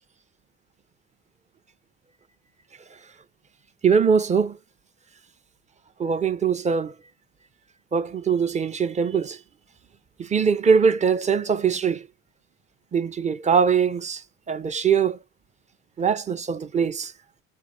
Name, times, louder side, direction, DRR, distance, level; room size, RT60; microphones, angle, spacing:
voice 1, 3.8-4.6 6.0-6.9 7.9-9.4 10.2-12.1 12.9-14.2 14.5-15.2 16.0-17.1, right 6 dB, 20° right, 0.5 m, -22 dB
3.4 x 2.5 x 3.1 m
hypercardioid pair, 70°, 36 cm